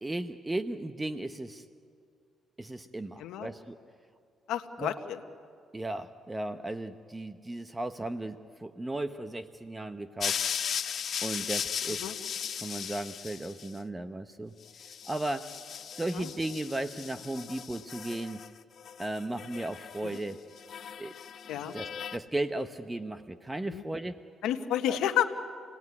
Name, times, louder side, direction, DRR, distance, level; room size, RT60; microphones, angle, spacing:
voice 1, 0.0-1.6 2.6-3.8 4.8-5.0 5.7-10.4 11.2-12.2 12.6-15.5 15.9-18.4 19.0-20.4 21.0-21.1 21.5-24.2 24.9-25.0, right 2 dB, 15° right, 10 dB, 0.8 m, -36 dB
voice 2, 4.5-5.2 12.0-12.1 16.1-16.3 21.5-21.7 23.7-23.8 24.4-25.2, left 11 dB, 90° left, 6 dB, 1.1 m, -30 dB
sound 1, 10.2-13.7 14.7-18.5 18.8-20.2 20.6-22.2, left 8 dB, 60° left, 0.8 m, -37 dB
27.5 x 18.5 x 9.6 m, 2.3 s
cardioid pair, 90°, 0 cm